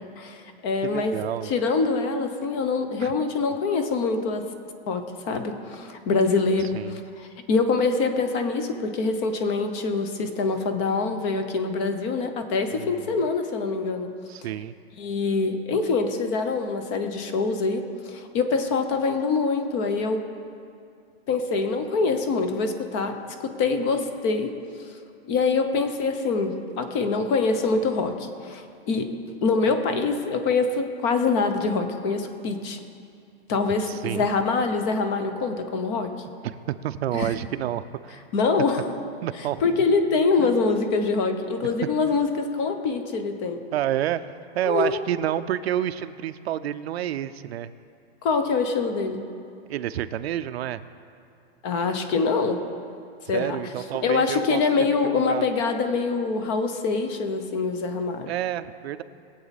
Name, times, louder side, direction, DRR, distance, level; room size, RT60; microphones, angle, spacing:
voice 1, 0.2-1.2 1.4-4.5 4.9-14.1 15.0-20.2 21.3-23.1 23.6-24.5 25.2-29.1 29.4-32.8 33.5-36.1 37.1-37.3 38.3-38.8 39.6-43.6 44.6-45.0 48.2-49.2 51.6-52.6 53.3-53.6 54.0-58.3, left 4 dB, 25° left, 7 dB, 0.8 m, -24 dB
voice 2, 0.8-1.5 3.0-3.1 6.7-7.0 12.7-13.0 14.3-14.7 33.8-34.3 36.4-38.2 39.2-39.6 40.4-40.6 41.3-41.4 43.7-44.3 44.5-47.7 49.7-50.8 53.3-54.6 55.0-55.5 58.3-59.0, right 11 dB, 80° right, 12 dB, 0.6 m, -29 dB
20.5 x 8.2 x 4.1 m, 2.4 s
supercardioid pair, 170°, 31 cm